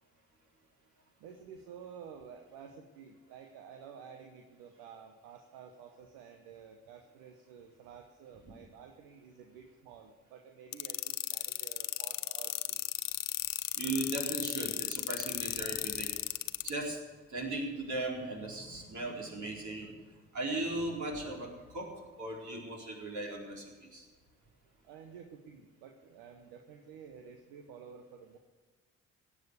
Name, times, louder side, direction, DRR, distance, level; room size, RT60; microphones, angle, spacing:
voice 1, 1.2-12.8 24.8-28.4, right 7 dB, 75° right, 5 dB, 1.1 m, -51 dB
sound 1, 10.7-16.7, left 16 dB, 60° left, 0.7 m, -34 dB
voice 2, 13.8-16.1 16.6-17.0 17.3-19.9 20.3-21.9 22.2-24.1, right 2 dB, 50° right, -1 dB, 4.3 m, -37 dB
17.0 x 7.4 x 8.4 m, 1.3 s
hypercardioid pair, 40°, 37 cm